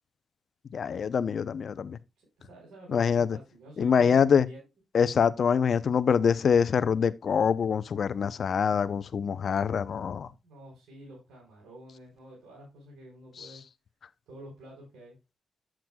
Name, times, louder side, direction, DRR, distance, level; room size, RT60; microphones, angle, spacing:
voice 1, 0.7-2.0 2.9-3.4 3.8-4.4 4.9-10.3, left 7 dB, 60° left, 0.6 m, -25 dB
voice 2, 2.4-4.6 10.2-13.6 14.3-15.2, right 1 dB, 80° right, 5.0 m, -49 dB
8.8 x 7.9 x 2.3 m
cardioid pair, 80°, 0 cm